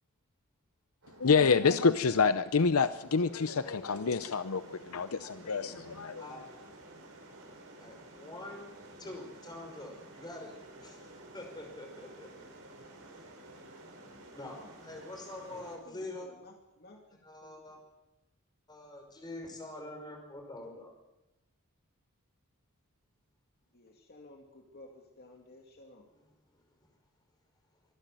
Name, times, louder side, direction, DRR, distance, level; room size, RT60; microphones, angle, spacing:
sound 1, 1.0-15.8, right 1 dB, 70° right, 5.1 m, -52 dB
voice 1, 1.2-6.2, left 5 dB, 75° left, 12 dB, 0.7 m, -27 dB
voice 2, 5.7-6.4 7.8-10.5 10.8-11.1 11.3-12.4 14.3-16.3 17.2-17.8 18.7-20.9, left 2 dB, 20° left, 2 dB, 5.7 m, -45 dB
voice 3, 15.5-17.8 23.7-26.1, left 2 dB, 45° left, 2 dB, 2.4 m, -55 dB
25.5 x 12.0 x 9.2 m, 0.98 s
head